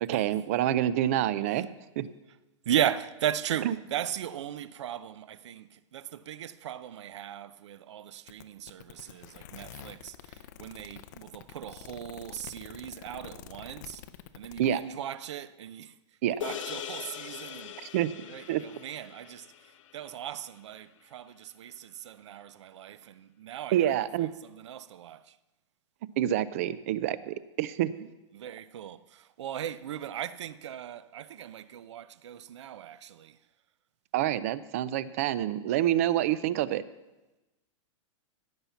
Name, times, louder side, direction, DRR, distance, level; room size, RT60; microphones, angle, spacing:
voice 1, 0.0-1.7 2.0-2.1 3.6-3.7 14.6-14.8 16.2-16.4 17.8-18.1 18.5-18.6 23.7-24.3 26.2-28.1 34.1-36.8, right 12 dB, 30° right, 0.4 m, -27 dB
voice 2, 2.6-14.0 14.3-15.9 16.3-24.1 24.4-25.4 28.3-33.4, right 10 dB, 65° right, 0.6 m, -37 dB
sound 1, 8.3-14.7, left 11 dB, 35° left, 0.5 m, -47 dB
sound 2, 16.4-21.0, left 10 dB, 80° left, 1.0 m, -42 dB
16.0 x 5.8 x 8.1 m
supercardioid pair, 175°, 16 cm